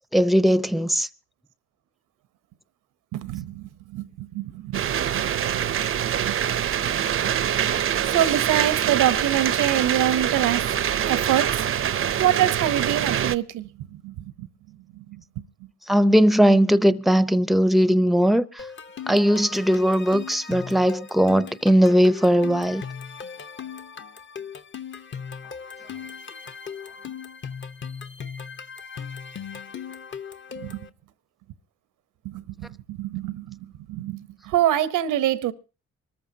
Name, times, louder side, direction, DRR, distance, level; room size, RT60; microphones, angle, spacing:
voice 1, 0.1-1.1 15.9-18.7 19.1-22.8, equal, ahead, 0.7 m, -19 dB
voice 2, 3.1-6.4 8.0-10.7 11.1-11.7 12.2-14.5 14.9-15.7 30.6-30.9 32.2-35.5, right 12 dB, 85° right, 0.9 m, -26 dB
sound 1, 4.7-13.4, right 9 dB, 45° right, 0.6 m, -24 dB
sound 2, 18.6-30.9, left 6 dB, 40° left, 1.0 m, -38 dB
25.0 x 14.0 x 2.8 m
cardioid pair, 90°, 30 cm